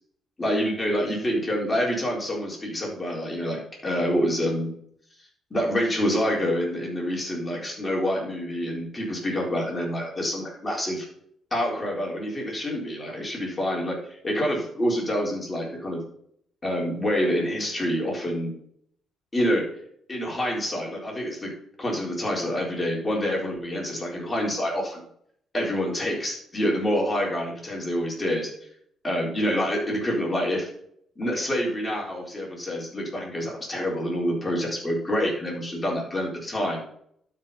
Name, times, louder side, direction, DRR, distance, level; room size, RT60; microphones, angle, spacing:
voice 1, 0.4-4.7 5.5-11.1 11.5-14.0 14.2-16.0 16.6-18.5 19.3-19.6 20.1-21.5 21.8-25.0 25.5-28.5 29.0-30.7 31.2-36.8, equal, 15° left, -3 dB, 3.9 m, -27 dB
12.0 x 5.3 x 4.2 m, 0.66 s
cardioid pair, 130°, 0 cm